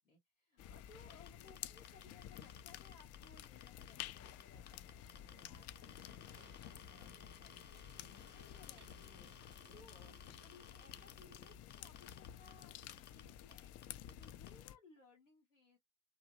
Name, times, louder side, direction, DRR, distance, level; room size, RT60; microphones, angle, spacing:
voice 1, 0.0-15.8, left 3 dB, 90° left, 0.7 m, -64 dB
sound 1, 0.6-14.8, left 11 dB, 45° left, 0.4 m, -52 dB
sound 2, 1.1-4.4 4.7-12.5 12.8-13.2 13.5-13.6 13.8-14.5, left 7 dB, 25° left, 0.8 m, -58 dB
sound 3, 5.0-11.6, right 10 dB, 30° right, 0.4 m, -68 dB
2.5 x 2.1 x 2.7 m
figure-of-eight pair, 45°, 37 cm